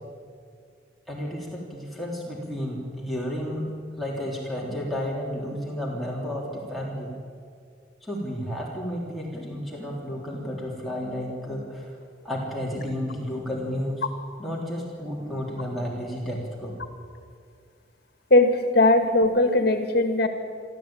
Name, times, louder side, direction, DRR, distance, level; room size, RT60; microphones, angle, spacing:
voice 1, 1.1-3.7 4.0-7.1 8.0-11.9 12.2-14.0 14.4-16.8, equal, ahead, -4 dB, 3.4 m, -32 dB
voice 2, 18.3-20.3, left 2 dB, 55° left, 6 dB, 2.1 m, -19 dB
27.0 x 13.0 x 8.8 m, 2.2 s
head